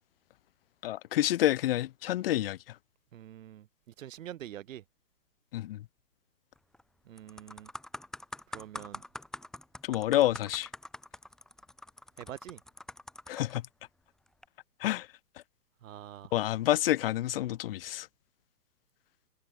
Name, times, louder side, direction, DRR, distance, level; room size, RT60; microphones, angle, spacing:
voice 1, 0.8-2.7 5.5-5.8 9.8-10.7 13.3-13.6 14.8-15.1 16.3-18.1, left 14 dB, 35° left, 0.8 m, -28 dB
voice 2, 3.1-3.7 4.0-4.8 7.1-7.7 8.5-9.0 12.2-12.6 15.8-16.3, right 12 dB, 50° right, 1.5 m, -45 dB
sound 1, 6.6-6.8 7.2-13.6 14.3-14.5, left 1 dB, ahead, 0.9 m, -45 dB
hypercardioid pair, 140°, 49 cm